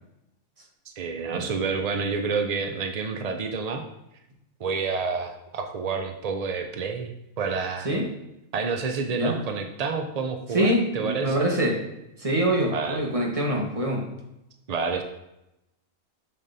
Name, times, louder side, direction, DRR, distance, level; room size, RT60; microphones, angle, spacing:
voice 1, 0.9-3.8 4.6-7.9 8.5-11.5 12.7-13.0 14.7-15.0, right 5 dB, 70° right, 5 dB, 0.3 m, -29 dB
voice 2, 10.5-11.8 12.2-14.0, right 1 dB, 25° right, -1 dB, 1.3 m, -24 dB
6.9 x 6.7 x 2.7 m, 0.89 s
omnidirectional pair, 1.4 m